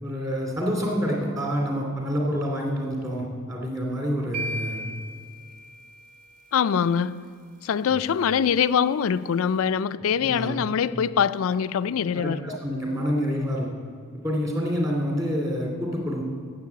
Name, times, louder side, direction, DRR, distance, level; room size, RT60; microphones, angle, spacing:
voice 1, 0.0-4.8 7.9-8.0 10.2-10.6 12.1-13.7 14.2-16.2, equal, 15° right, 2.4 m, -27 dB
sound 1, 4.3-6.5, right 1 dB, 40° right, 1.2 m, -36 dB
voice 2, 6.5-7.3 7.6-12.5, left 7 dB, 80° left, 0.4 m, -23 dB
10.5 x 7.4 x 8.2 m
head